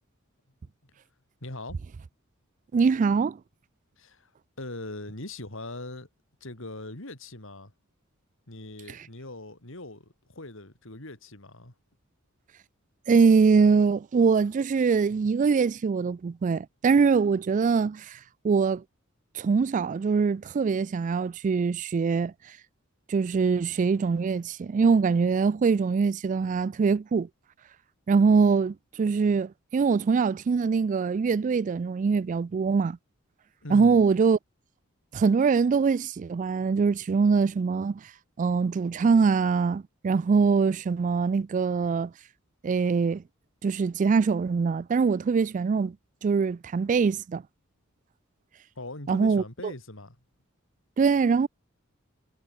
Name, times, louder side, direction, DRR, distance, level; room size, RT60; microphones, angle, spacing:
voice 1, 1.4-1.8 4.0-4.3 4.6-6.1 6.4-7.7 8.5-11.7 33.6-34.0 48.8-50.2, left 2 dB, 65° left, 4.1 m, -41 dB
voice 2, 2.7-3.4 13.1-18.2 18.4-18.8 19.4-22.3 23.1-27.3 28.1-33.0 33.7-34.4 35.1-38.0 38.4-42.1 42.6-43.2 43.6-45.9 46.2-47.4 49.1-49.4 51.0-51.5, right 5 dB, 40° right, 0.3 m, -23 dB
head